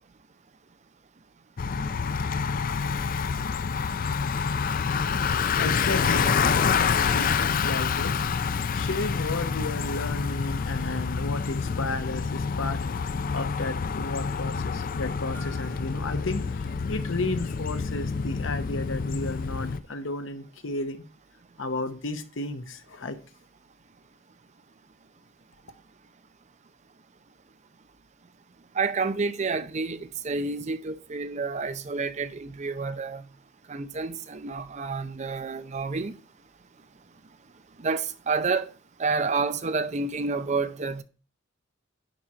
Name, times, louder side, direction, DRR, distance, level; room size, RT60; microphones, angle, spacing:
Bicycle, 1.6-19.8, left 6 dB, 45° left, 0.4 m, -27 dB
voice 1, 5.0-21.0 21.6-23.2, left 2 dB, 75° left, 1.0 m, -33 dB
Gong, 15.3-18.6, equal, 10° left, 1.9 m, -53 dB
voice 2, 28.7-33.2 33.7-36.2 37.8-38.7 39.0-41.0, right 4 dB, 35° right, 0.6 m, -29 dB
10.5 x 4.3 x 4.9 m
head